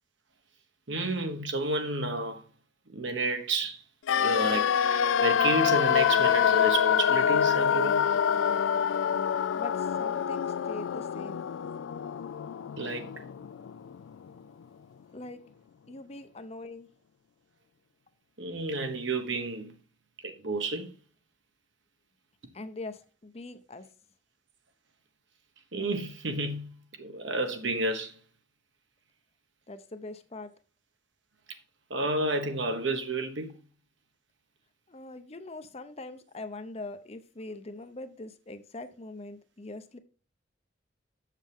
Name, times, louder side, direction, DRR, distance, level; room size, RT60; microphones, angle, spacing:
voice 1, 0.9-2.4 2.9-3.8 4.2-8.1 12.8-13.1 18.4-19.7 20.2-20.9 25.7-26.7 27.0-28.2 31.9-33.5, right 2 dB, 70° right, 1.3 m, -31 dB
sound 1, 4.1-14.0 14.3-14.4, left 8 dB, 80° left, 0.3 m, -26 dB
voice 2, 9.5-11.5 15.1-15.4 15.9-16.9 22.5-23.8 29.7-30.5 34.9-40.0, left 2 dB, 30° left, 0.6 m, -42 dB
7.4 x 7.3 x 3.5 m
head